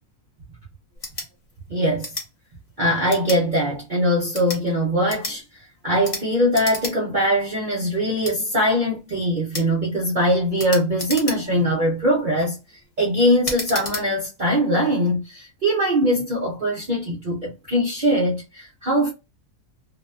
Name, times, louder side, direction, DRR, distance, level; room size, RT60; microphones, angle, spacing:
sound 1, 0.9-1.3 2.0-2.3 3.1-3.4 4.2-4.6 5.1-5.4 6.0-6.2 6.5-6.9 7.3-7.4 8.2-8.4 9.5-9.7 10.6-11.6 12.2-12.5 13.4-14.0, left 2 dB, 40° left, 0.5 m, -31 dB
voice 1, 1.7-2.1 2.8-19.1, equal, 60° right, 0.5 m, -22 dB
2.7 x 2.2 x 2.4 m
omnidirectional pair, 1.7 m